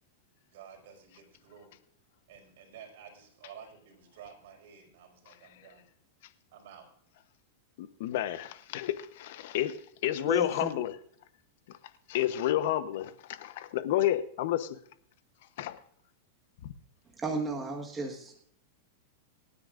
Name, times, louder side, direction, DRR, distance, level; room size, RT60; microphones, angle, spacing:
voice 1, 0.5-1.8 2.3-5.9 6.5-6.9, right 7 dB, 65° right, 5.1 m, -51 dB
voice 2, 7.8-10.9 11.7-11.8 12.1-14.8 15.6-15.8 16.6-16.7, left 13 dB, 60° left, 0.9 m, -30 dB
voice 3, 10.2-10.7 17.2-18.3, right 2 dB, 10° right, 1.4 m, -33 dB
27.0 x 9.8 x 2.5 m
supercardioid pair, 150°, 0 cm